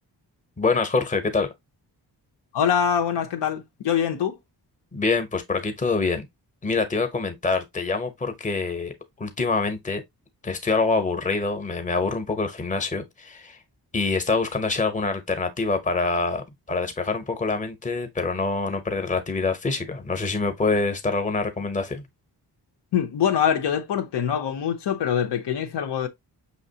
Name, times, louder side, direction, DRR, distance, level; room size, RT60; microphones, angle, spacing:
voice 1, 0.6-1.5 4.9-6.3 6.6-10.0 10.4-13.6 13.9-22.0, left 3 dB, 20° left, 0.8 m, -25 dB
voice 2, 2.5-4.4 22.9-26.1, left 8 dB, 85° left, 0.9 m, -24 dB
5.9 x 3.0 x 2.7 m
wide cardioid pair, 140°, 41 cm